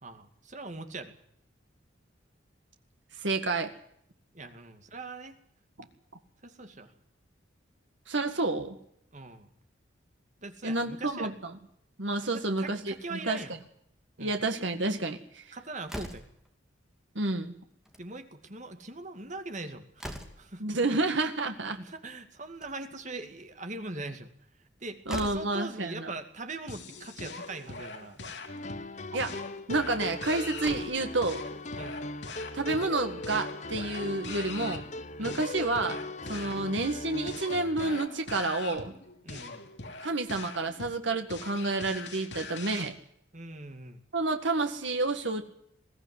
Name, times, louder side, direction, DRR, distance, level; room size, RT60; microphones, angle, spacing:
voice 1, 0.0-1.1 4.3-5.3 6.4-6.9 9.1-9.5 10.4-11.3 12.2-13.5 14.2-14.4 15.5-16.3 18.0-20.0 20.4-20.6 21.6-24.3 24.6-28.2 31.7-32.0 35.2-35.4 36.4-36.6 39.2-39.7 43.3-44.0, right 2 dB, 40° right, 7 dB, 2.3 m, -41 dB
voice 2, 3.2-3.7 8.1-8.8 10.6-11.5 12.0-13.4 14.2-15.4 17.2-17.5 20.6-21.8 25.1-26.1 29.1-29.4 29.7-31.4 32.5-34.8 35.2-36.0 36.3-38.9 40.0-43.0 44.1-45.4, right 2 dB, 70° right, 6 dB, 1.9 m, -30 dB
Slam, 15.9-16.5 17.7-18.1 18.4-18.5 18.8-18.9 19.4-20.6 22.3-23.0 24.6-24.7 25.1-25.6 26.7-26.8 27.2-27.3 28.1-28.3 30.0-30.1 30.5-31.1, equal, 5° right, 2.6 m, -42 dB
sound 1, 26.7-42.9, left 3 dB, 60° left, 3.0 m, -43 dB
sound 2, 28.5-38.1, left 2 dB, 35° left, 0.9 m, -39 dB
22.0 x 15.5 x 9.7 m, 0.71 s
head